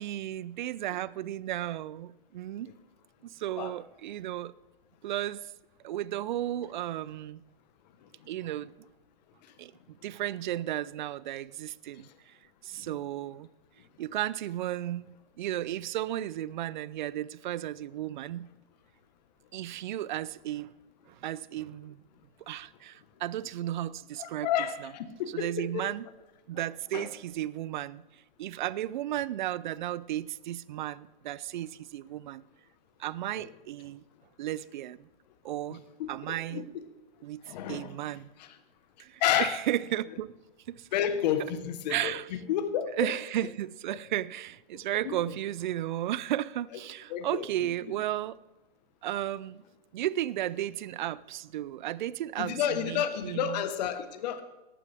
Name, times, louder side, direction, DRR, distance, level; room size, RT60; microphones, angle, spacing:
voice 1, 0.0-2.7 3.2-4.5 5.0-5.5 5.8-7.4 8.3-8.7 9.6-12.4 12.6-13.5 14.0-18.5 19.5-20.7 21.1-22.0 22.5-24.5 24.8-24.9 25.3-26.1 26.5-32.4 33.0-34.0 34.4-35.1 35.4-35.8 36.1-36.7 37.2-38.3 39.0-40.4 40.7-40.9 41.9-42.3 43.0-48.4 49.0-49.6 49.9-53.6, right 13 dB, 55° right, 0.5 m, -34 dB
voice 2, 24.2-25.9 26.9-27.1 33.3-33.5 36.0-36.1 36.5-36.8 37.4-37.9 38.4-38.5 39.2-39.6 40.9-43.1 45.0-45.2 47.1-47.4 52.4-54.4, left 9 dB, 45° left, 1.3 m, -31 dB
16.0 x 12.0 x 3.5 m
hypercardioid pair, 140°, 29 cm